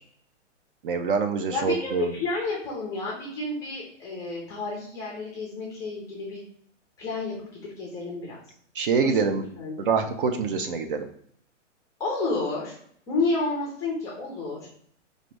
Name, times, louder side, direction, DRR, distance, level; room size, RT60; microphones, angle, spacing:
voice 1, 0.8-2.1 8.7-9.4 9.8-11.1, right 5 dB, 45° right, 6 dB, 0.5 m, -25 dB
voice 2, 1.5-6.4 7.0-8.4 9.0-9.9 12.0-12.7 13.1-14.6, left 3 dB, 10° left, -4 dB, 0.5 m, -30 dB
4.9 x 2.6 x 3.2 m, 0.64 s
hypercardioid pair, 155°, 37 cm